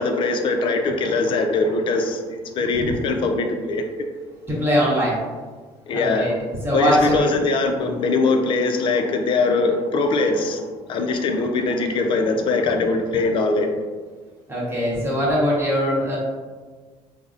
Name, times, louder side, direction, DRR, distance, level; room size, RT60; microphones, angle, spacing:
voice 1, 0.0-3.8 5.9-6.4 6.7-13.7, left 3 dB, 45° left, 5 dB, 0.4 m, -22 dB
voice 2, 4.5-5.2 5.9-6.3 6.6-7.3 14.5-16.2, equal, 20° right, -6 dB, 1.0 m, -21 dB
3.7 x 2.0 x 2.5 m, 1.4 s
cardioid pair, 135°, 12 cm